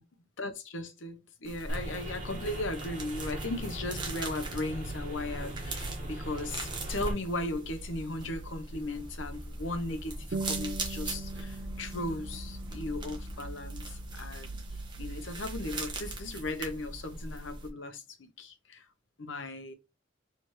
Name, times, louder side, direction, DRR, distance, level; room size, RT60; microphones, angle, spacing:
voice 1, 0.4-14.6 15.0-18.9 19.2-19.7, left 2 dB, 85° left, 0.9 m, -37 dB
sound 1, 1.4-17.7, right 2 dB, 25° right, 1.2 m, -41 dB
sound 2, 1.7-7.1, right 1 dB, 40° right, 1.6 m, -38 dB
sound 3, 10.3-15.3, right 3 dB, 60° right, 0.6 m, -42 dB
4.6 x 3.4 x 3.1 m
head